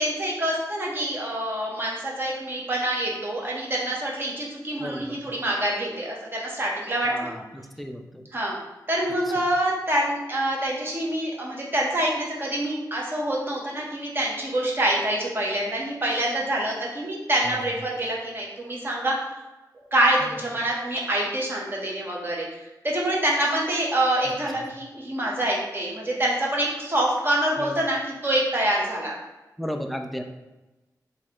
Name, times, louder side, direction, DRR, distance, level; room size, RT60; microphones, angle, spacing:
voice 1, 0.0-7.3 8.3-8.6 8.9-19.1 19.9-22.5 22.8-29.1, right 1 dB, 30° right, -3 dB, 0.9 m, -26 dB
voice 2, 4.8-5.3 7.1-8.3 17.5-17.6 24.5-24.7 27.6-27.7 29.6-30.2, equal, ahead, 4 dB, 0.4 m, -34 dB
3.1 x 2.8 x 3.6 m, 1.1 s
wide cardioid pair, 90°, 7 cm